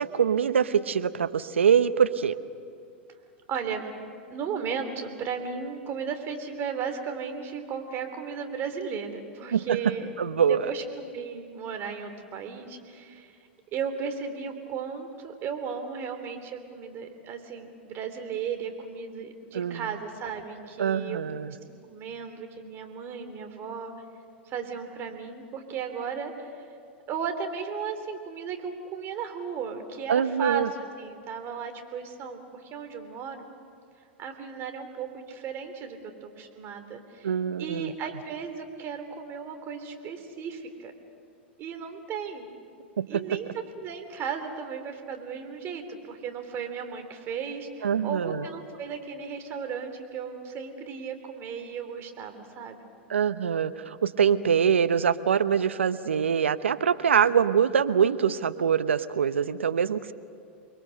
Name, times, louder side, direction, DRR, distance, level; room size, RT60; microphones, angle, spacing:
voice 1, 0.0-2.4 9.5-9.8 10.2-10.7 19.5-19.8 20.8-21.5 30.1-30.7 37.2-37.9 43.0-43.2 47.8-48.4 53.1-60.1, right 7 dB, 85° right, 13 dB, 0.8 m, -24 dB
voice 2, 3.5-3.8 4.3-10.1 10.4-13.3 13.7-21.2 21.5-21.6 21.9-23.9 24.4-26.6 27.1-30.7 31.0-33.4 34.2-37.3 37.6-40.9 41.6-42.5 43.1-52.8, right 6 dB, 40° right, 6 dB, 3.3 m, -35 dB
29.5 x 22.0 x 6.6 m, 2.4 s
hypercardioid pair, 105°, 6 cm